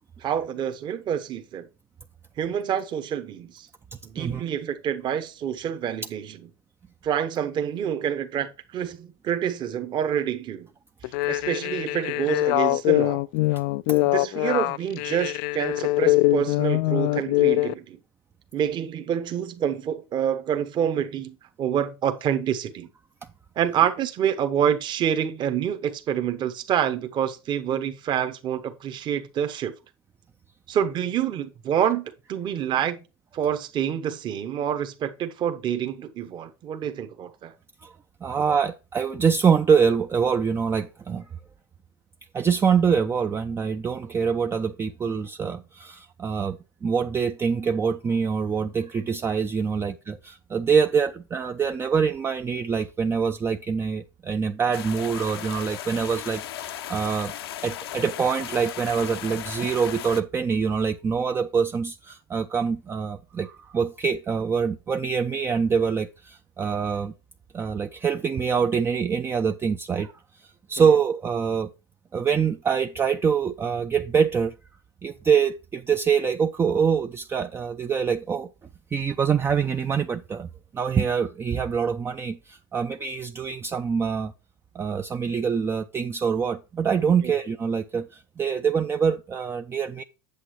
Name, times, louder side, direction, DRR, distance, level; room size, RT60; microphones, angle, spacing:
voice 1, 0.2-1.7 2.4-3.7 4.0-6.4 7.0-10.7 11.3-13.2 14.0-18.0 18.5-22.9 23.6-29.7 30.7-33.0 33.3-37.5 70.8-70.9 87.2-87.4, right 9 dB, 35° right, 1.1 m, -27 dB
sound 1, 11.0-17.7, left 20 dB, 60° left, 0.4 m, -23 dB
voice 2, 38.2-41.3 42.3-57.3 57.6-67.1 67.5-70.1 70.4-71.7 72.1-74.5 75.0-78.5 78.9-80.5 80.7-84.3 84.7-90.0, right 6 dB, 20° right, 0.4 m, -25 dB
sound 2, 54.7-60.2, left 12 dB, 80° left, 0.8 m, -36 dB
8.3 x 7.4 x 3.1 m
hypercardioid pair, 105°, 13 cm